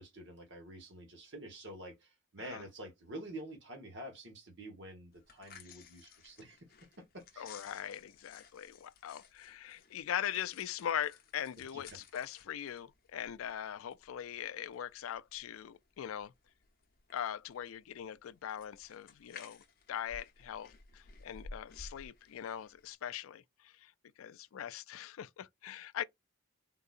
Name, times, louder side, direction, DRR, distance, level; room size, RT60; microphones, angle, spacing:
voice 1, 0.0-6.7 7.0-7.5 11.7-11.8, right 1 dB, 55° right, 1.3 m, -48 dB
sound 1, 5.1-23.0, left 4 dB, 45° left, 0.7 m, -56 dB
voice 2, 7.4-16.3 17.1-23.9 24.2-26.0, left 10 dB, 80° left, 0.3 m, -41 dB
3.8 x 2.6 x 2.4 m
head